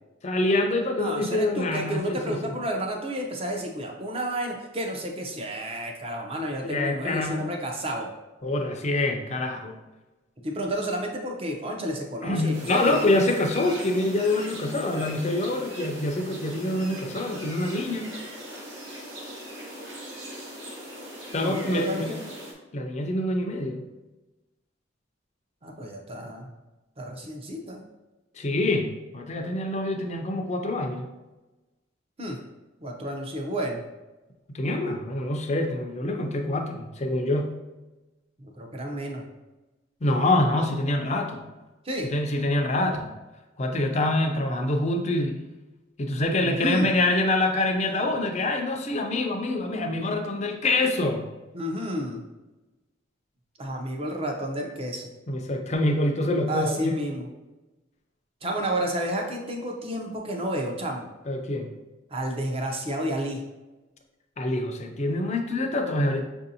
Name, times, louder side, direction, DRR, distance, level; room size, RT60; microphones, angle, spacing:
voice 1, 0.2-2.6 6.6-7.5 8.4-9.7 12.2-18.1 21.3-22.2 22.7-23.8 28.4-31.1 34.5-37.5 40.0-41.4 42.0-43.1 43.6-45.4 46.0-51.2 55.3-56.9 61.3-61.7 64.4-66.2, left 2 dB, 35° left, 4 dB, 0.5 m, -26 dB
voice 2, 1.0-8.1 10.4-13.3 21.4-22.3 25.6-26.5 27.0-27.8 32.2-32.4 32.8-33.8 38.4-39.2 41.8-42.1 46.4-47.0 51.5-52.2 53.6-55.1 56.5-57.3 58.4-61.1 62.1-63.4, right 1 dB, 30° right, 1 dB, 0.6 m, -31 dB
sound 1, 12.5-22.5, equal, 70° right, 0.9 m, -40 dB
5.9 x 2.6 x 2.7 m, 1.1 s
head